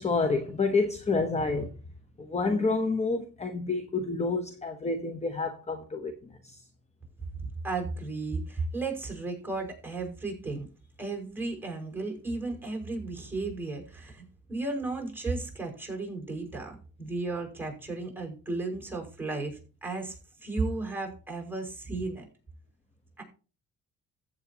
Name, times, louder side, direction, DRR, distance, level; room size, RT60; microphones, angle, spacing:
voice 1, 0.0-1.7 2.2-6.1 6.4-6.6, left 3 dB, 20° left, 1.1 m, -28 dB
voice 2, 7.6-10.7 11.0-20.2 20.4-22.2 23.2-23.3, right 3 dB, 5° right, 5.8 m, -34 dB
15.0 x 8.2 x 3.0 m
cardioid pair, 90°, 30 cm